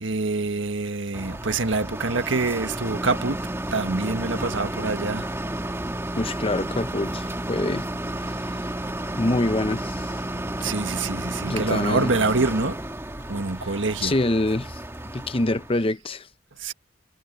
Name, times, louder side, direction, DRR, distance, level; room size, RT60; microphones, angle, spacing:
voice 1, 0.0-3.4 3.7-5.3 10.6-12.8 13.3-14.1 16.6-16.7, right 3 dB, 80° right, 1.6 m, -26 dB
sound 1, 1.1-15.8, right 1 dB, 15° right, 2.0 m, -32 dB
voice 2, 6.2-7.9 9.2-10.2 11.5-12.1 14.0-14.8 15.1-16.3, left 2 dB, 30° left, 0.8 m, -25 dB
head